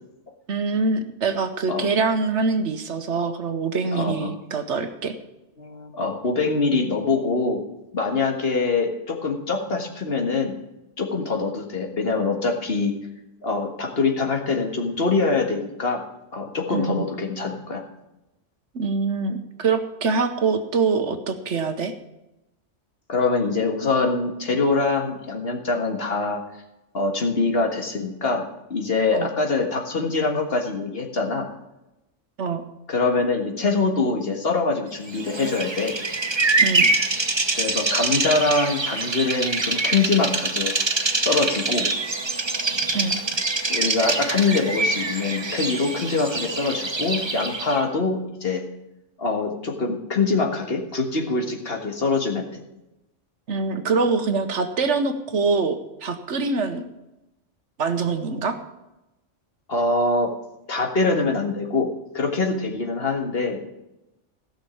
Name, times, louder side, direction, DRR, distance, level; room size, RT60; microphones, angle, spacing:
voice 1, 0.5-5.1 16.7-17.0 18.7-21.9 29.1-29.3 32.4-32.6 36.6-36.9 42.9-43.2 53.5-56.8 57.8-58.6, right 4 dB, 70° right, 8 dB, 1.3 m, -24 dB
voice 2, 3.9-4.3 5.6-7.6 7.9-10.6 11.0-13.0 13.4-16.0 16.3-17.8 23.1-26.4 26.9-28.4 28.7-31.5 32.9-35.9 37.5-40.7 41.2-41.9 43.7-48.6 49.2-52.6 59.7-60.3 60.7-63.7, left 3 dB, 55° left, 1 dB, 1.8 m, -24 dB
Bird vocalization bird call bird song, 35.1-47.8, right 3 dB, 25° right, 0.9 m, -25 dB
15.5 x 6.4 x 7.1 m, 0.94 s
omnidirectional pair, 1.3 m